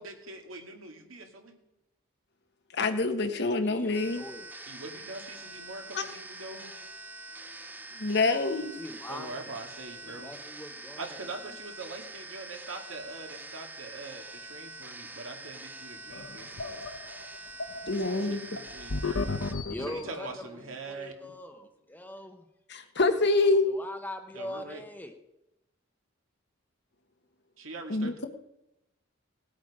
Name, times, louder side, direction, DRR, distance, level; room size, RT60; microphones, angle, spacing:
voice 1, 0.0-1.6 3.0-3.3 4.7-6.7 9.1-10.3 11.0-16.9 18.3-19.4 19.9-21.3 24.3-24.8 27.6-28.3, right 3 dB, 75° right, 2 dB, 2.3 m, -43 dB
voice 2, 2.8-4.2 5.9-6.0 8.0-8.8 17.9-18.5 22.7-23.7 27.9-28.3, left 3 dB, 50° left, 7 dB, 1.2 m, -26 dB
voice 3, 3.6-4.5 8.7-9.6 10.0-11.6 16.7-17.3 19.7-22.5 23.6-25.1, left 1 dB, 10° left, 6 dB, 1.0 m, -42 dB
sound 1, 3.9-19.5, right 2 dB, 10° right, 0.6 m, -45 dB
sound 2, 16.1-20.5, left 3 dB, 75° left, 1.0 m, -35 dB
19.0 x 8.5 x 5.0 m, 0.91 s
head